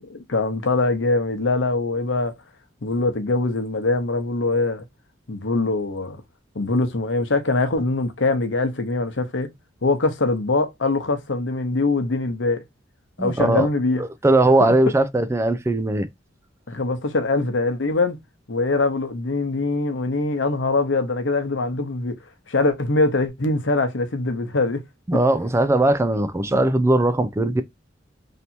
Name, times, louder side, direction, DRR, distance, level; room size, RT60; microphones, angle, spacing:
voice 1, 0.0-2.3 2.8-4.8 5.3-6.2 6.5-9.5 9.8-12.6 13.2-14.0 14.6-14.7 16.7-18.2 18.5-22.1 22.5-24.8, left 3 dB, 80° left, 0.9 m, -23 dB
voice 2, 13.2-13.7 14.0-16.1 25.1-27.6, right 2 dB, 15° right, 0.4 m, -19 dB
3.3 x 2.8 x 4.2 m
head